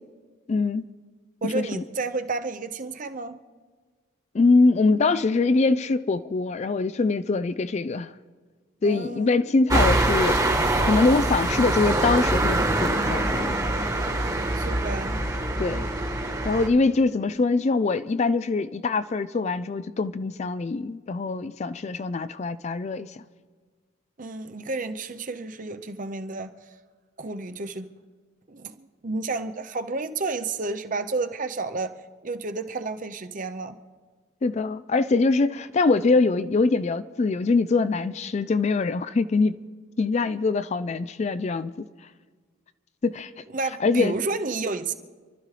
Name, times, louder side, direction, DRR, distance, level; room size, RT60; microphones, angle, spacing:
voice 1, 0.5-0.9 1.4-1.8 4.3-8.1 8.8-10.4 10.8-13.6 15.6-15.9 16.4-23.2 34.4-39.6 40.0-41.9 43.0-43.3 43.8-44.1, left 3 dB, 35° left, 0.3 m, -23 dB
voice 2, 1.4-3.4 8.8-9.4 14.5-15.2 24.2-26.5 27.2-27.9 28.5-31.9 32.2-33.8 43.5-44.9, right 3 dB, 40° right, 0.7 m, -31 dB
sound 1, 9.7-16.7, right 1 dB, 15° right, 1.3 m, -24 dB
28.0 x 12.5 x 3.3 m
head